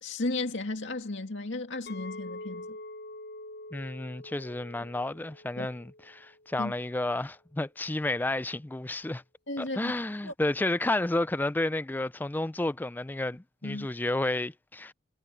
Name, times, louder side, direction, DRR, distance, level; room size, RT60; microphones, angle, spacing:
voice 1, 0.0-2.8 5.6-5.7 6.6-6.7 9.5-9.9 10.2-10.3 13.6-13.9, left 2 dB, 75° left, 2.1 m, -34 dB
Chink clink, 1.9-7.0, left 2 dB, 55° left, 0.7 m, -45 dB
voice 2, 3.7-9.2 9.6-14.9, left 2 dB, 10° left, 0.3 m, -31 dB
head